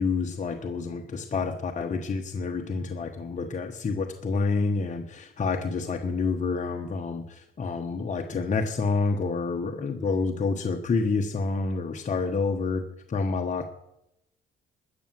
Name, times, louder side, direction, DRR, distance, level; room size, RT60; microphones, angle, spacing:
voice 1, 0.0-12.8 13.1-13.6, left 4 dB, 40° left, 3 dB, 1.3 m, -28 dB
13.5 x 8.8 x 7.6 m, 0.84 s
cardioid pair, 90°, 20 cm